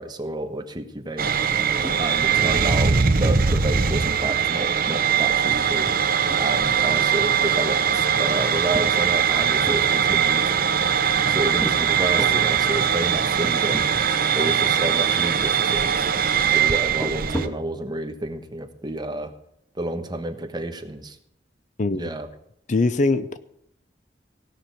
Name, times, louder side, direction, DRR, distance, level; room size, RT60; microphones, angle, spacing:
voice 1, 0.0-1.3 2.0-5.9 6.4-10.5 11.3-13.9 14.3-16.1 16.5-19.3 19.7-21.2 21.9-22.3, right 1 dB, 25° right, 1.2 m, -30 dB
sound 1, 1.2-17.5, right 7 dB, 55° right, 0.8 m, -21 dB
sound 2, 1.8-2.3 2.6-2.7 3.1-3.3 3.8-3.9 4.3-6.5 6.8-7.5 8.0-9.8 10.5-11.2 11.6-11.8 12.2-12.5 13.0-13.1 13.4-13.9 14.2-14.3 14.9-15.5 16.8-17.7, equal, 10° left, 1.5 m, -34 dB
voice 2, 21.8-22.1 22.7-23.4, left 3 dB, 45° left, 0.5 m, -22 dB
16.5 x 6.0 x 8.4 m
head